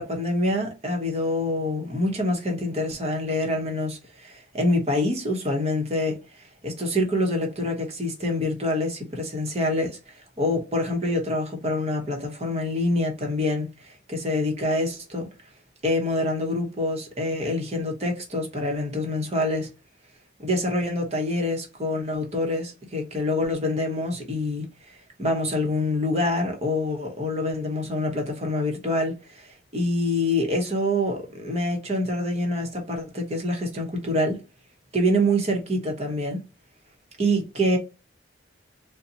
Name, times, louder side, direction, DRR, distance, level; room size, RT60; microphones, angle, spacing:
voice 1, 0.0-6.2 6.6-15.3 15.8-19.7 20.4-34.4 34.9-36.4 37.2-37.8, left 1 dB, 35° right, 1.0 m, -26 dB
3.9 x 2.2 x 2.8 m
head